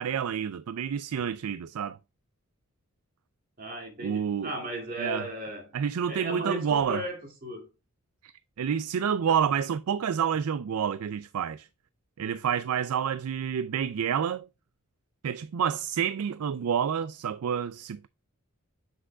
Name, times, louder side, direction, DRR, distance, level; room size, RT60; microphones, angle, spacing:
voice 1, 0.0-2.0 4.0-4.5 5.0-5.3 5.7-7.0 8.2-8.3 8.6-11.7 12.2-14.5 15.2-18.1, right 8 dB, 85° right, 0.4 m, -28 dB
voice 2, 3.6-5.8 6.1-7.7, right 1 dB, 40° right, 2.4 m, -36 dB
7.5 x 6.2 x 2.2 m
head